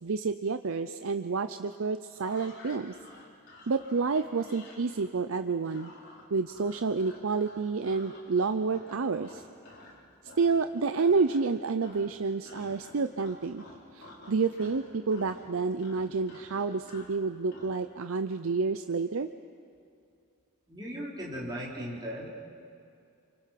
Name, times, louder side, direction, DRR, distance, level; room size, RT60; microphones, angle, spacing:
voice 1, 0.0-2.9 3.7-5.9 6.3-9.4 10.4-13.6 13.9-19.3, right 4 dB, 65° right, 10 dB, 0.6 m, -29 dB
sound 1, 2.1-10.0 10.2-10.7 10.9-11.5 11.8-17.8, left 2 dB, 50° left, 4.4 m, -51 dB
voice 2, 20.7-22.3, equal, 20° right, -5 dB, 4.2 m, -37 dB
28.0 x 25.0 x 5.9 m, 2.5 s
head